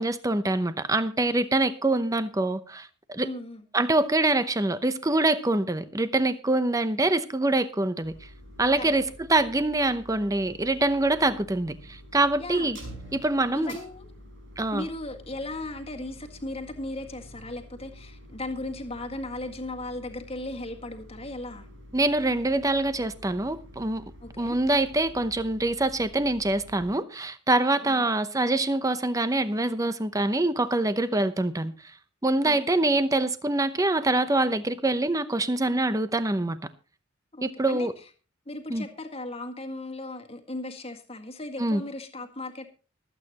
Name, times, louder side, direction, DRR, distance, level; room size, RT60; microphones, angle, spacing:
voice 1, 0.0-3.3 3.7-8.1 8.6-12.8 13.1-13.7 14.6-14.9 21.9-24.0 24.4-31.7 32.2-36.6 37.4-37.9 38.7-38.8 41.6-41.8, right 2 dB, 15° right, 0.7 m, -25 dB
voice 2, 3.2-3.7 8.7-8.9 12.4-12.7 13.5-14.1 14.7-21.7 24.2-24.6 27.8-28.1 32.4-32.7 37.3-37.9 38.5-42.7, left 2 dB, 30° left, 1.8 m, -37 dB
sound 1, 8.0-26.9, equal, 65° right, 5.6 m, -48 dB
25.0 x 8.7 x 3.0 m
head